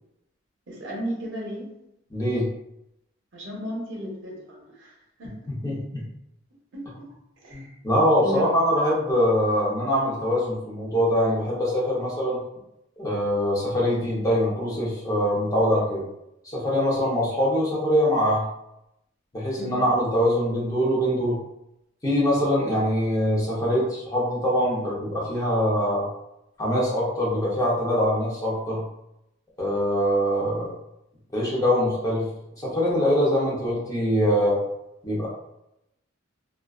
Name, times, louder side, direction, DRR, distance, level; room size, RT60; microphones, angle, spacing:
voice 1, 0.7-1.7 3.3-5.3 6.7-7.1 7.4-7.8 8.2-8.5 19.6-19.8, equal, 65° right, -2 dB, 0.6 m, -34 dB
voice 2, 2.1-2.5 5.5-6.0 7.5-12.4 13.0-16.0 16.4-18.4 19.3-21.4 22.0-26.1 26.6-28.8 29.6-30.7 31.3-32.3 32.6-34.6 35.0-35.3, equal, 15° left, -6 dB, 0.6 m, -23 dB
2.3 x 2.3 x 2.3 m, 0.85 s
head